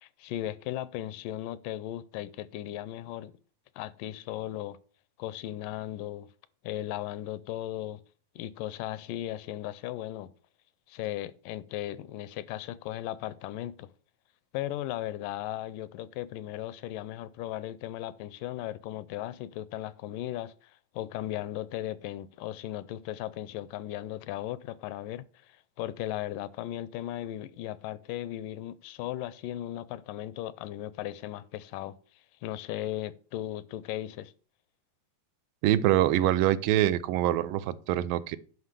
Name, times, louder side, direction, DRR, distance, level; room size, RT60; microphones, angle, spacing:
voice 1, 0.0-3.3 3.8-4.8 5.2-6.3 6.6-8.0 8.4-10.3 10.9-13.9 14.5-32.0 32.4-34.3, left 13 dB, 80° left, 2.1 m, -37 dB
voice 2, 35.6-38.4, right 13 dB, 85° right, 2.4 m, -25 dB
9.7 x 5.6 x 6.6 m
omnidirectional pair, 3.9 m